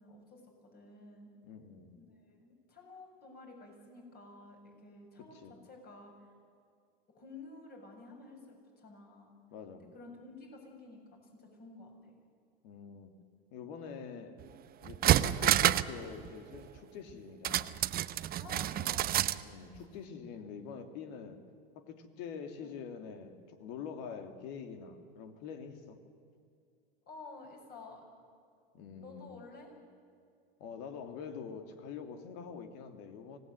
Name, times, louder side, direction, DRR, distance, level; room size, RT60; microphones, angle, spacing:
voice 1, 0.0-1.3 1.9-5.4 5.6-6.3 7.1-9.3 9.9-12.2 18.4-19.4 22.6-22.7 27.1-28.0 29.0-29.7, left 3 dB, 35° left, 1 dB, 7.3 m, -52 dB
voice 2, 1.4-1.9 5.2-5.6 9.5-9.8 12.6-13.1 13.5-14.4 14.8-17.8 19.4-21.4 21.7-26.0 28.7-29.4 30.6-33.4, left 6 dB, 55° left, 7 dB, 2.8 m, -45 dB
sound 1, 14.4-14.5 14.8-16.0 16.2-16.3 17.4-19.4 19.7-19.8, right 12 dB, 30° right, 0.8 m, -28 dB
25.5 x 18.0 x 7.9 m, 2.3 s
hypercardioid pair, 100°, 29 cm